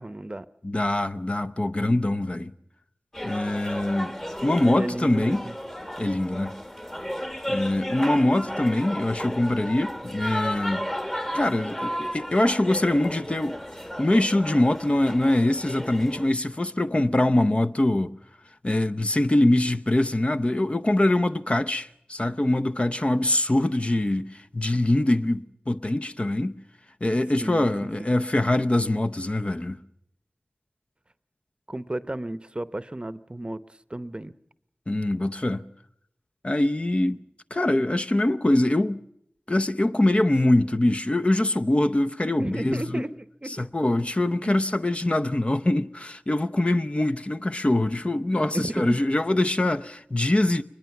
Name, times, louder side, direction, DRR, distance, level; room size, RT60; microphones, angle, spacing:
voice 1, 0.0-0.5 4.6-5.5 27.4-27.7 31.7-33.6 33.9-34.3 42.4-43.7 44.4-44.6 48.5-49.0, right 1 dB, 30° right, 0.8 m, -33 dB
voice 2, 0.6-2.5 3.2-4.1 4.4-5.4 6.0-6.5 7.5-10.8 11.3-13.6 14.0-18.1 18.6-26.6 27.0-29.8 34.9-35.6 36.4-37.2 37.5-39.0 39.5-43.0 43.6-50.6, left 1 dB, 35° left, 0.7 m, -23 dB
sound 1, 3.1-16.3, equal, 15° left, 1.4 m, -34 dB
23.0 x 20.5 x 5.9 m
wide cardioid pair, 55°, 4 cm